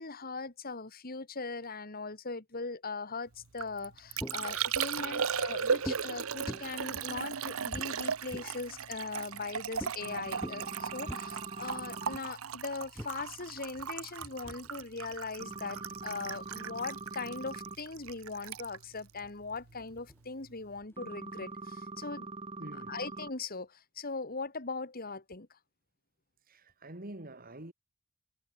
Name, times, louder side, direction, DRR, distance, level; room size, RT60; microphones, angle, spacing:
voice 1, 0.0-22.3 22.7-25.5, left 4 dB, 45° left, 2.3 m, -40 dB
Liquid, 3.4-20.0 20.2-20.8, right 7 dB, 75° right, 0.9 m, -37 dB
sound 1, 3.7-4.7 5.8-6.1 6.5-8.6 9.7-9.9 10.3-11.2 12.1-12.3 12.9-16.3 17.0-17.6 18.0-18.1 18.4-20.2 20.8-21.6, equal, 10° left, 6.4 m, -45 dB
voice 2, 5.0-5.4 22.6-22.9 26.5-27.7, right 1 dB, 45° right, 2.9 m, -47 dB
sound 2, 10.0-12.2 15.4-17.8 21.0-23.3, right 3 dB, 25° right, 5.6 m, -43 dB
head